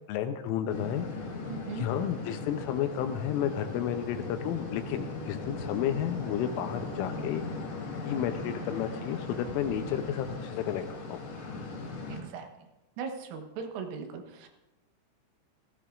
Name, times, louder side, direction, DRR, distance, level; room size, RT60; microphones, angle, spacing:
voice 1, 0.1-1.0 1.7-7.4 8.1-10.8 11.1-11.2, left 10 dB, 85° left, 8 dB, 3.1 m, -32 dB
sound 1, 0.7-12.2, left 3 dB, 70° left, 1.6 m, -38 dB
voice 2, 1.5-1.9 12.1-12.7 13.0-14.5, right 5 dB, 80° right, 4 dB, 3.7 m, -39 dB
17.0 x 15.5 x 2.5 m, 1.0 s
omnidirectional pair, 6.0 m